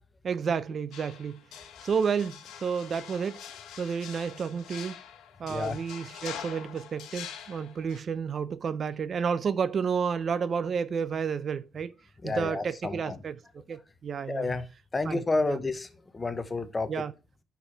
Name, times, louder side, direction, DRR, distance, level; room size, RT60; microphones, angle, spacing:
voice 1, 0.2-1.4 1.8-3.4 3.8-5.0 5.4-11.9 12.2-13.4 13.7-14.5 15.0-15.2 15.5-15.6 16.9-17.1, right 6 dB, 50° right, 0.6 m, -31 dB
sound 1, 0.9-8.0, left 9 dB, 85° left, 1.3 m, -44 dB
voice 2, 12.2-13.2 14.3-14.7 14.9-15.9 16.1-16.9, left 3 dB, 25° left, 1.0 m, -30 dB
6.3 x 5.9 x 5.4 m
cardioid pair, 90°, 0 cm